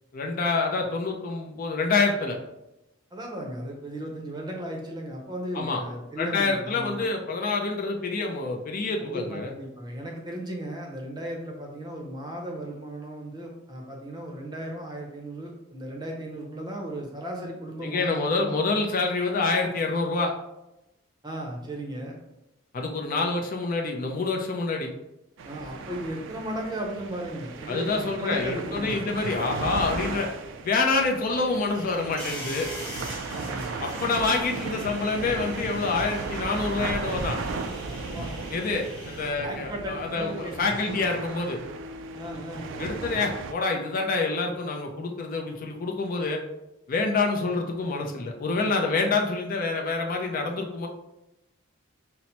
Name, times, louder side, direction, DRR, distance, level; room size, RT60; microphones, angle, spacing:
voice 1, 0.1-2.4 5.5-5.8 6.2-9.5 17.8-20.3 22.7-24.9 27.7-30.3 30.6-32.7 33.8-37.4 38.5-41.6 42.8-46.4 46.9-50.9, left 3 dB, 45° left, 2 dB, 0.4 m, -27 dB
voice 2, 3.1-7.0 9.0-18.6 21.2-22.2 25.4-29.1 33.3-33.7 37.8-38.3 39.4-41.0 42.1-42.9, right 1 dB, 20° right, 0 dB, 0.6 m, -36 dB
sound 1, 25.4-43.5, right 4 dB, 65° right, 0.3 m, -36 dB
sound 2, 31.7-39.3, left 1 dB, 5° left, 1.2 m, -42 dB
5.6 x 2.0 x 2.8 m, 0.91 s
head